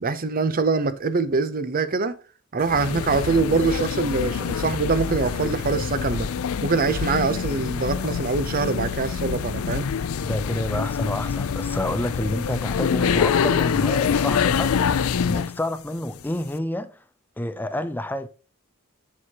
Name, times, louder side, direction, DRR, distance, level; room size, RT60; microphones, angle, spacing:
voice 1, 0.0-2.1 2.5-6.3 6.6-9.9, right 4 dB, 45° right, 0.6 m, -24 dB
sound 1, 2.6-15.6, left 6 dB, 90° left, 0.4 m, -25 dB
voice 2, 10.2-17.0 17.4-18.3, left 1 dB, 10° left, 0.4 m, -29 dB
7.3 x 6.3 x 2.9 m
head